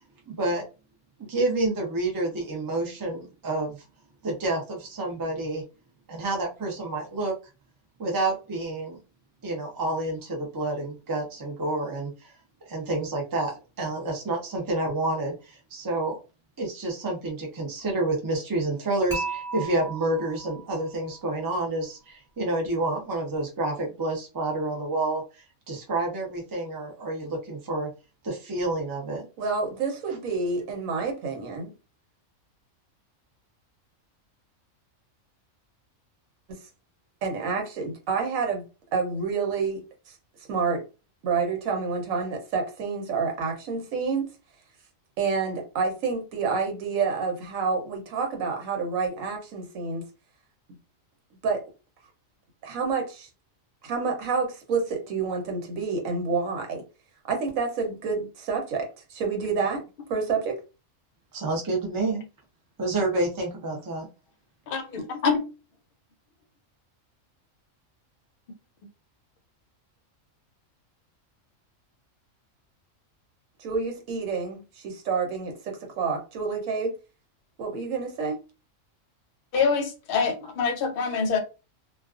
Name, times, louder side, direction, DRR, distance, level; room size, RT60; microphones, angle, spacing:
voice 1, 0.3-0.6 1.3-3.8 4.2-5.6 6.1-7.3 8.0-9.0 9.4-12.3 12.6-16.2 16.6-25.2 25.7-27.9 28.2-29.3 61.3-62.2 62.8-64.1, right 2 dB, 30° right, 0.3 m, -29 dB
Dishes pots and pans / Chink clink, 19.1-21.2, right 4 dB, ahead, 1.1 m, -35 dB
voice 2, 29.4-31.7 36.5-36.6 37.2-38.7 38.9-39.8 40.5-40.8 41.2-44.3 45.2-50.0 51.4-51.6 52.6-53.3 53.8-56.8 57.3-59.8 60.1-60.6 73.6-76.9 77.6-78.4, right 5 dB, 85° right, 1.1 m, -28 dB
voice 3, 64.7-65.4 79.5-81.4, left 5 dB, 60° left, 0.6 m, -25 dB
2.3 x 2.2 x 2.3 m
omnidirectional pair, 1.4 m